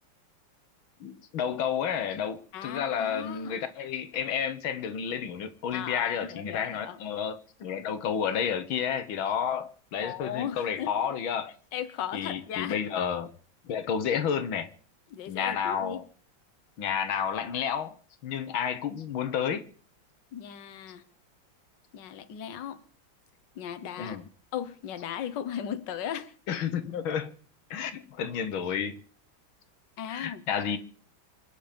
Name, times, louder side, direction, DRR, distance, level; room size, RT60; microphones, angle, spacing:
voice 1, 1.0-11.5 12.1-13.3 13.7-14.7 15.3-16.0 16.8-18.0 18.2-19.6 24.0-24.2 26.5-27.3 27.7-29.0 30.1-30.8, left 8 dB, 85° left, 2.0 m, -31 dB
voice 2, 2.5-3.6 5.7-7.0 10.0-10.9 11.7-12.8 15.1-16.0 20.3-21.0 21.9-22.8 23.6-24.2 24.5-26.3 30.0-30.4, left 9 dB, 65° left, 1.7 m, -37 dB
26.5 x 10.0 x 5.2 m
omnidirectional pair, 2.1 m